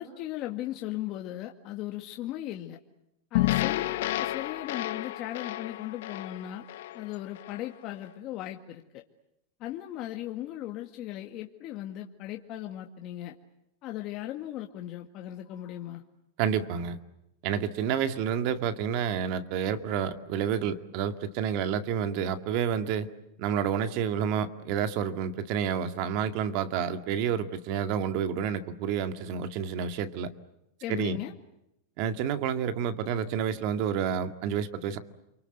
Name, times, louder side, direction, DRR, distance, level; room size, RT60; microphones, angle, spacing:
voice 1, 0.0-2.8 3.3-6.7 6.9-9.0 9.6-13.4 13.8-16.0 30.8-31.3, left 13 dB, 40° left, 3 dB, 2.0 m, -37 dB
sound 1, 3.3-7.7, left 16 dB, 75° left, 1.1 m, -31 dB
voice 2, 16.4-17.0 17.4-23.1 23.4-30.3 30.9-31.2 32.0-35.0, right 8 dB, 50° right, 9 dB, 2.2 m, -29 dB
30.0 x 24.5 x 8.1 m, 0.83 s
supercardioid pair, 145°, 0 cm